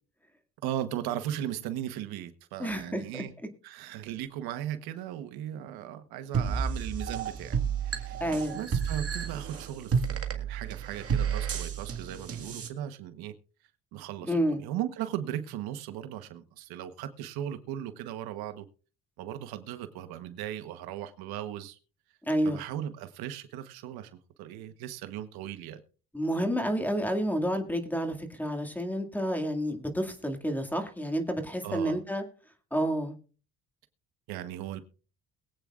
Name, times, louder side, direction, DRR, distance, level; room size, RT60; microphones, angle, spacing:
voice 1, 0.6-3.3 3.6-13.3 13.9-18.7 19.2-21.8 22.4-24.1 24.4-25.8 31.6-32.0 34.3-34.8, right 11 dB, 85° right, 1.2 m, -37 dB
voice 2, 2.6-3.2 8.2-8.6 14.2-14.6 22.3-22.6 26.1-32.2 32.7-33.1, equal, 5° left, 2.2 m, -29 dB
sound 1, 6.3-12.7, right 6 dB, 40° right, 1.8 m, -31 dB
22.0 x 8.6 x 2.5 m
cardioid pair, 95°, 36 cm